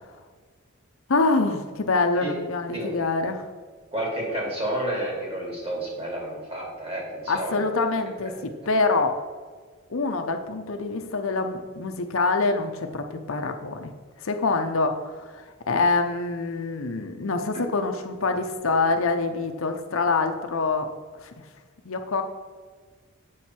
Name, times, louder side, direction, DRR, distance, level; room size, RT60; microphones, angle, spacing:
voice 1, 1.1-3.4 7.3-8.3 8.7-9.2 9.9-13.9 14.2-20.9 21.2-21.3 21.8-22.2, left 3 dB, 65° left, 6 dB, 0.7 m, -25 dB
voice 2, 3.9-7.6 8.3-8.4 8.8-8.9, right 1 dB, 25° right, -2 dB, 2.5 m, -30 dB
8.2 x 6.4 x 4.3 m, 1.5 s
head